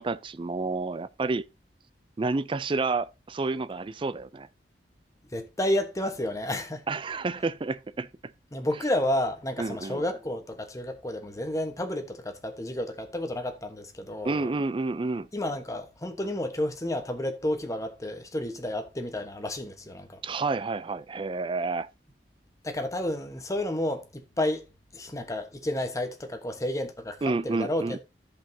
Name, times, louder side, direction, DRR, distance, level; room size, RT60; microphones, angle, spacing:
voice 1, 0.0-1.4 2.2-4.5 6.9-8.1 9.6-10.0 14.2-15.3 20.2-21.9 27.2-28.0, right 3 dB, 30° right, 0.4 m, -29 dB
voice 2, 5.3-6.8 8.5-14.5 15.3-20.2 22.6-24.7 24.9-28.0, left 1 dB, 20° left, 1.2 m, -31 dB
14.0 x 5.6 x 2.7 m
head